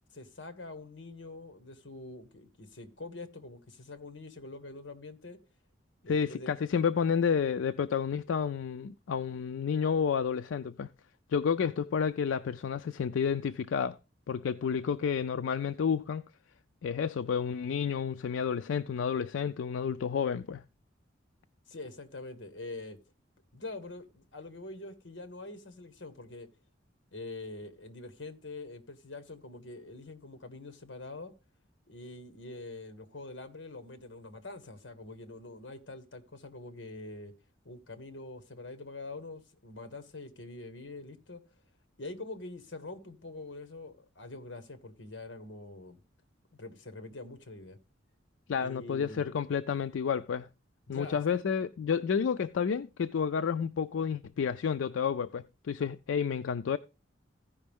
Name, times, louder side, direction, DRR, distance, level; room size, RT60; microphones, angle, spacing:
voice 1, 0.1-5.4 6.0-6.5 21.7-23.0 23.5-26.5 27.1-31.3 31.9-37.3 37.6-41.4 42.0-46.0 46.6-47.8 48.6-49.3 50.9-51.4, left 2 dB, 65° left, 1.3 m, -45 dB
voice 2, 6.1-10.9 11.3-14.0 14.3-16.2 16.8-20.6 48.5-50.5 50.9-56.8, left 6 dB, 80° left, 0.4 m, -30 dB
15.5 x 5.2 x 3.5 m
head